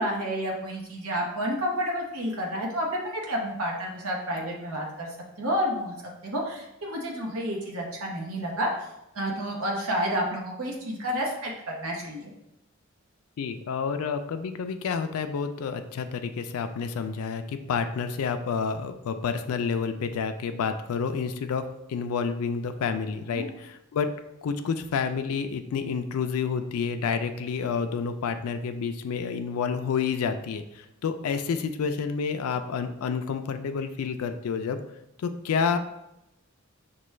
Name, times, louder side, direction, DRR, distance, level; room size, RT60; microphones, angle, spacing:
voice 1, 0.0-5.1 5.4-5.9 6.2-8.7 9.1-12.3 23.3-23.5, equal, 80° right, -1 dB, 0.8 m, -30 dB
voice 2, 13.4-21.6 21.9-24.1 24.4-34.8 35.2-35.8, left 6 dB, 85° left, 9 dB, 0.3 m, -29 dB
6.0 x 2.2 x 3.1 m, 0.86 s
head